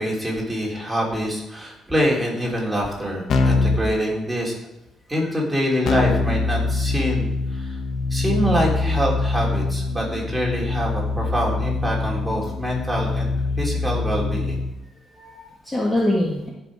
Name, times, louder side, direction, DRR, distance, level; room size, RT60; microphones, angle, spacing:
voice 1, 0.0-4.5 5.1-7.8 8.1-13.3 13.6-14.6, equal, 10° right, -3 dB, 3.3 m, -25 dB
Keyboard (musical), 3.3-3.9 5.8-14.7, left 3 dB, 55° left, 1.3 m, -24 dB
voice 2, 15.1-16.5, left 1 dB, 10° left, -3 dB, 1.7 m, -24 dB
15.0 x 5.7 x 4.9 m, 0.97 s
cardioid pair, 140°, 0 cm